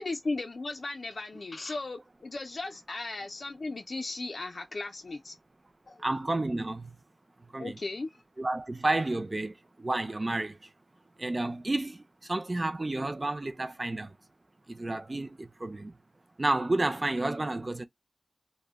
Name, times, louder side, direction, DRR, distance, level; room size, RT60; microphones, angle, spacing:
voice 1, 0.0-5.3 5.9-6.0 7.6-8.2, left 2 dB, 70° left, 0.4 m, -36 dB
voice 2, 6.0-7.0 7.5-7.8 8.4-10.7 11.2-14.1 14.7-16.0 16.4-17.8, right 2 dB, 35° right, 0.4 m, -31 dB
2.1 x 2.1 x 3.4 m
wide cardioid pair, 70°, 0 cm